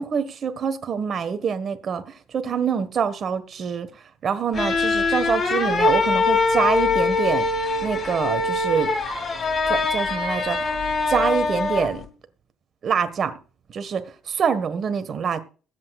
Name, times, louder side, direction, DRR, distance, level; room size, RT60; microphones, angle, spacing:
voice 1, 0.0-2.0 2.3-3.9 4.2-7.5 7.8-8.9 9.7-10.7 11.1-12.0 12.8-13.3 13.7-15.4, right 6 dB, 45° right, 1.5 m, -25 dB
sound 1, 4.5-12.0, left 3 dB, 35° left, 2.3 m, -23 dB
22.0 x 8.3 x 2.4 m
cardioid pair, 100°, 0 cm